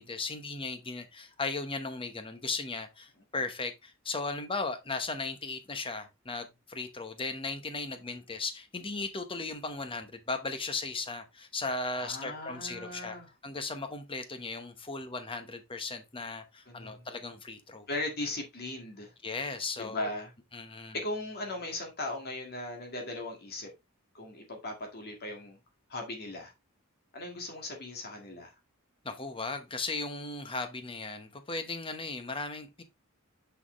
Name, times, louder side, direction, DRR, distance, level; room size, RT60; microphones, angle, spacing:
voice 1, 0.0-13.2 13.4-17.9 19.2-20.1 20.5-21.0 29.0-32.8, left 3 dB, 25° left, 1.0 m, -37 dB
voice 2, 11.9-13.3 16.7-17.1 17.9-19.1 19.8-20.3 20.9-23.7 24.1-25.6 25.9-26.5 27.1-28.5, left 2 dB, 50° left, 1.9 m, -38 dB
6.3 x 5.8 x 3.1 m
head